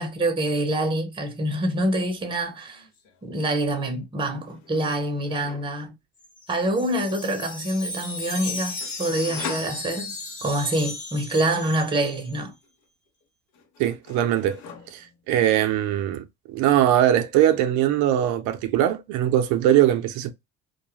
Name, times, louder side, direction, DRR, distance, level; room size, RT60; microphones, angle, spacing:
voice 1, 0.0-2.9 3.2-5.9 6.5-10.1 10.4-12.5, right 1 dB, 15° right, 0.7 m, -26 dB
sound 1, 2.1-2.4 2.7-3.5 4.4-5.8 8.8-10.4 12.6-13.2 13.5-15.2, left 6 dB, 70° left, 0.9 m, -42 dB
Wind chime, 6.2-12.4, left 3 dB, 25° left, 1.1 m, -36 dB
voice 2, 13.8-14.6 14.9-16.2 16.5-20.3, right 11 dB, 75° right, 0.5 m, -21 dB
2.3 x 2.1 x 3.0 m
cardioid pair, 130°, 29 cm